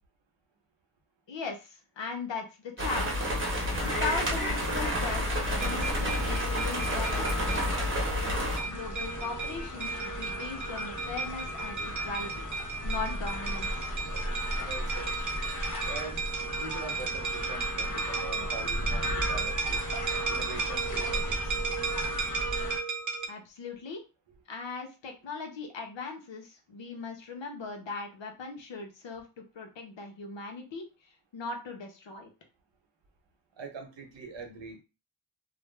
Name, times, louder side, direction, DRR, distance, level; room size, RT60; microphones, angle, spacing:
voice 1, 1.3-3.4 3.8-8.0 8.6-12.5 12.8-13.9 23.3-24.0 24.5-32.3, left 4 dB, 65° left, 3 dB, 0.8 m, -39 dB
sound 1, 2.8-8.6, equal, 25° right, 1.0 m, -30 dB
sound 2, 3.7-22.8, left 1 dB, 40° left, 0.8 m, -36 dB
sound 3, 5.6-23.3, right 4 dB, 40° right, 0.4 m, -35 dB
voice 2, 14.6-15.1 15.8-19.8 20.3-21.6 33.6-34.8, right 3 dB, 65° right, 3 dB, 0.9 m, -43 dB
2.5 x 2.1 x 3.2 m, 0.30 s
wide cardioid pair, 80°, 48 cm